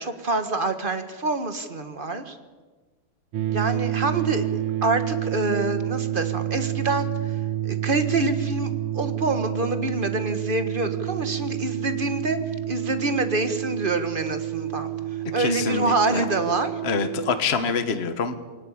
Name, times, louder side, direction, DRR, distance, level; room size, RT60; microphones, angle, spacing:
voice 1, 0.0-2.4 3.5-4.5 4.8-7.3 7.6-12.4 12.7-14.9 15.3-16.8, right 2 dB, 25° right, 8 dB, 1.5 m, -26 dB
sound 1, 3.3-17.4, right 12 dB, 90° right, 1.9 m, -29 dB
voice 2, 15.4-16.2 16.8-18.4, left 5 dB, 35° left, 9 dB, 1.5 m, -26 dB
22.0 x 18.5 x 8.7 m, 1.3 s
omnidirectional pair, 2.3 m